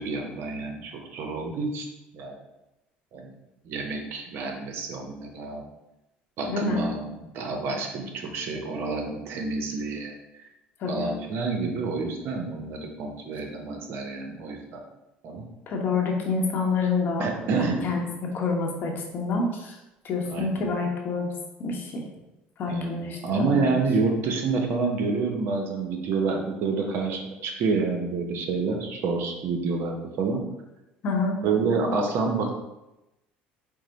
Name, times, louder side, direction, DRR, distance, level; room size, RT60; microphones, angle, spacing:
voice 1, 0.0-1.9 2.1-2.4 3.1-3.3 3.6-5.7 6.4-10.4 10.9-14.8 15.2-15.5 17.2-17.8 20.3-20.6 22.7-30.4 31.4-32.5, right 4 dB, 60° right, 2 dB, 0.7 m, -28 dB
voice 2, 6.4-6.8 10.8-11.1 15.7-17.3 17.8-19.8 20.0-21.3 21.6-22.0 22.6-23.7 31.0-31.4, left 4 dB, 50° left, 1 dB, 0.9 m, -27 dB
4.7 x 2.1 x 3.9 m, 0.96 s
supercardioid pair, 95°, 4 cm